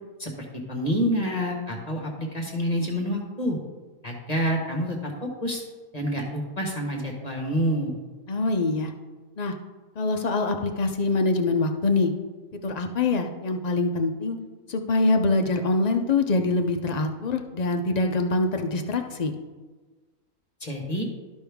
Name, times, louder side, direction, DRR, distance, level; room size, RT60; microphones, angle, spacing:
voice 1, 0.7-3.6 4.0-5.6 5.9-7.9 20.6-21.0, equal, 30° left, 1 dB, 1.2 m, -27 dB
voice 2, 8.3-8.9 9.4-9.5 10.0-12.1 12.5-14.4 14.7-19.3, left 3 dB, 60° left, 5 dB, 0.4 m, -24 dB
12.5 x 5.3 x 3.5 m, 1.3 s
omnidirectional pair, 1.5 m